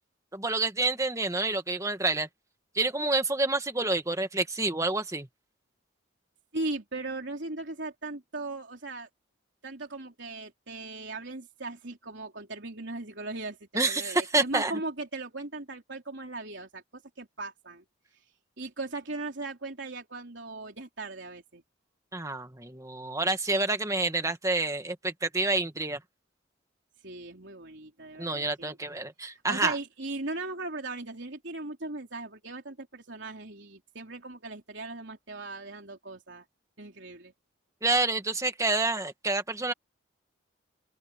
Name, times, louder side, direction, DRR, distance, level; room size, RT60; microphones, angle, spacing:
voice 1, 0.3-2.3 2.8-5.3 13.7-14.7 22.1-26.0 28.2-29.7 37.8-39.7, right 2 dB, 15° right, 1.8 m, -28 dB
voice 2, 6.5-9.1 9.6-17.8 18.6-21.6 27.0-28.8 29.5-36.4 36.8-37.3, right 2 dB, 65° right, 3.8 m, -38 dB
open air
head